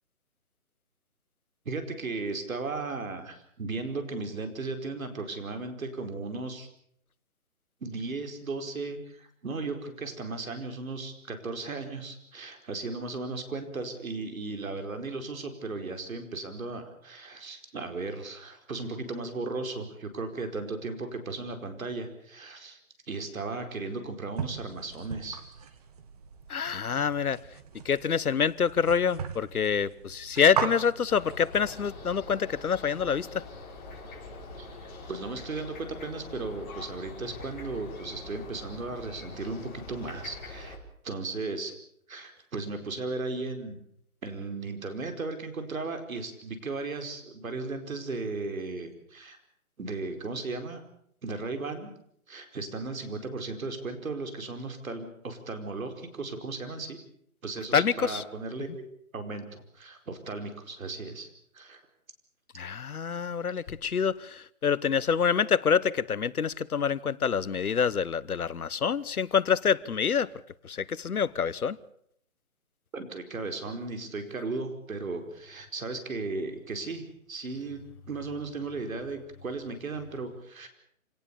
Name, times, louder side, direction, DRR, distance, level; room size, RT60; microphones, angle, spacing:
voice 1, 1.6-6.7 7.8-22.8 23.1-25.7 34.6-40.8 41.0-41.7 42.1-43.8 44.2-49.4 49.8-50.8 51.2-51.9 52.3-57.0 57.4-58.8 59.1-61.8 72.9-77.8 78.1-80.7, right 3 dB, 70° right, 4.8 m, -36 dB
sound 1, 24.4-31.8, right 7 dB, 25° right, 1.5 m, -38 dB
voice 2, 26.5-27.4 27.8-33.4 57.7-58.2 62.6-70.3 70.6-71.8, left 7 dB, 80° left, 1.2 m, -26 dB
sound 2, 31.1-40.8, left 3 dB, 30° left, 5.5 m, -44 dB
27.0 x 18.0 x 7.0 m
hypercardioid pair, 160°, 43 cm